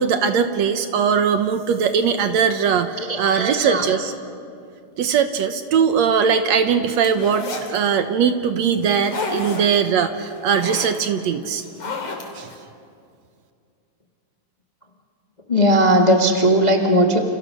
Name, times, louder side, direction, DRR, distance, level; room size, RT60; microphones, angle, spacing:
voice 1, 0.0-4.1 5.0-11.6 12.4-12.5, right 7 dB, 65° right, 9 dB, 2.0 m, -20 dB
voice 2, 3.0-3.8 15.5-17.2, equal, 20° left, 2 dB, 1.1 m, -17 dB
sound 1, 7.0-7.8 8.8-9.8 10.2-11.0 11.5-12.5, left 3 dB, 50° left, 3.9 m, -30 dB
29.5 x 29.0 x 6.5 m, 2.4 s
omnidirectional pair, 3.6 m